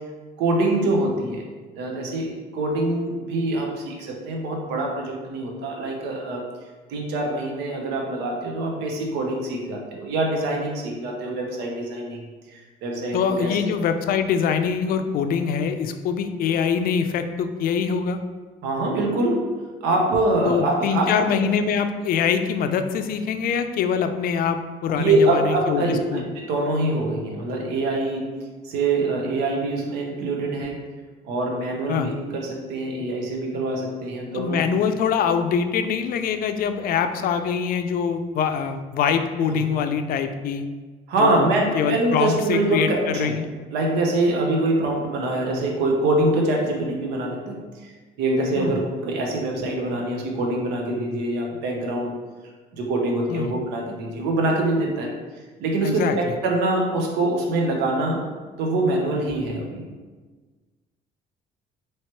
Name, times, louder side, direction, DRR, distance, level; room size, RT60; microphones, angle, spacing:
voice 1, 0.4-1.4 1.7-6.5 6.9-13.6 18.6-19.5 19.8-21.1 24.9-28.3 28.6-30.8 31.2-34.6 39.5-39.6 41.1-43.3 43.7-47.9 48.2-52.2 52.7-55.1 55.6-58.2 58.6-59.9, right 2 dB, 90° right, 0 dB, 0.8 m, -24 dB
voice 2, 13.1-18.2 20.5-26.2 31.9-32.1 34.3-40.7 41.2-41.5 41.7-43.5 48.6-48.7 53.3-53.5 55.8-56.1, left 7 dB, 60° left, 8 dB, 0.4 m, -24 dB
3.1 x 3.0 x 4.4 m, 1.4 s
cardioid pair, 110°, 17 cm